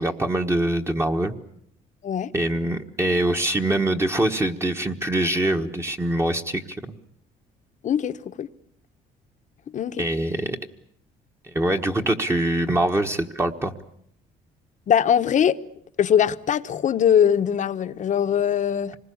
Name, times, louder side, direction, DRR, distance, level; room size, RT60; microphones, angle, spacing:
voice 1, 0.0-1.4 2.3-7.0 10.0-10.6 11.4-13.7, right 1 dB, 15° right, 1.4 m, -24 dB
voice 2, 7.8-8.5 9.7-10.0 14.9-15.6 16.0-19.0, left 9 dB, 45° left, 1.0 m, -21 dB
26.0 x 20.5 x 8.5 m
cardioid pair, 110°, 17 cm